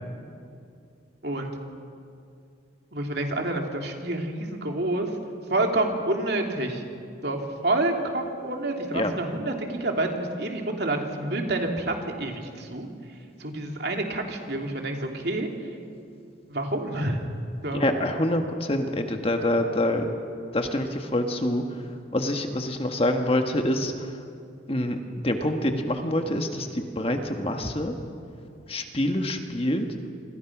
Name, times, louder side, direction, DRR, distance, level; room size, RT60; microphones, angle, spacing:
voice 1, 2.9-5.1 5.5-6.8 7.2-12.9 13.4-15.5 16.5-17.2 17.6-17.8, right 2 dB, 55° right, 2 dB, 3.0 m, -28 dB
voice 2, 17.7-20.1 20.5-21.8 22.1-24.2 24.7-25.0 25.2-27.9 28.7-29.9, left 1 dB, 30° left, 5 dB, 1.6 m, -26 dB
27.5 x 26.0 x 6.1 m, 2.4 s
head